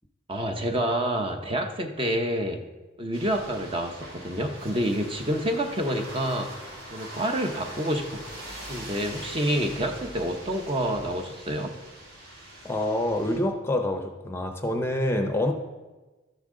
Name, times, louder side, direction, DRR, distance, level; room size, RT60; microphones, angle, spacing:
voice 1, 0.3-2.6 3.0-6.5 6.9-8.2 8.7-11.8, right 1 dB, 25° right, 4 dB, 0.9 m, -28 dB
sound 1, 3.1-13.4, right 1 dB, 80° right, 3.0 m, -42 dB
voice 2, 12.6-15.5, left 1 dB, 15° left, 5 dB, 0.7 m, -26 dB
12.5 x 9.9 x 3.8 m, 1.2 s
head